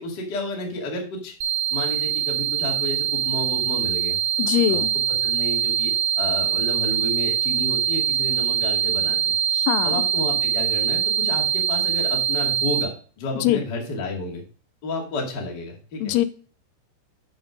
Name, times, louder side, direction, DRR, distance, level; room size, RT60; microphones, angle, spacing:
voice 1, 0.0-1.3 1.7-4.2 4.7-4.8 5.2-9.3 9.8-12.9 13.2-14.4 14.8-16.1, left 2 dB, 35° left, 0 dB, 1.8 m, -31 dB
sound 1, 1.4-12.8, right 9 dB, 85° right, 3.4 m, -23 dB
voice 2, 4.4-4.9 9.5-10.0 13.4-13.6 16.0-16.3, left 14 dB, 85° left, 12 dB, 3.0 m, -22 dB
8.0 x 6.8 x 5.0 m, 0.40 s
omnidirectional pair, 5.4 m